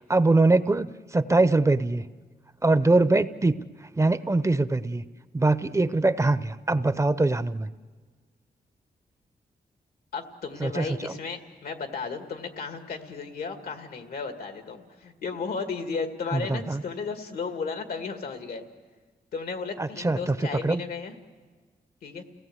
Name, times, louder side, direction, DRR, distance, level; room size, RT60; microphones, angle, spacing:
voice 1, 0.1-2.0 2.6-3.6 4.0-5.0 5.3-7.7 10.6-11.1 16.3-16.8 19.8-20.4 20.6-20.8, right 2 dB, 20° right, 14 dB, 0.6 m, -23 dB
voice 2, 10.1-18.6 19.3-21.1 22.0-22.2, left 5 dB, 85° left, 7 dB, 2.0 m, -34 dB
30.0 x 17.0 x 8.0 m, 1.4 s
cardioid pair, 95°, 15 cm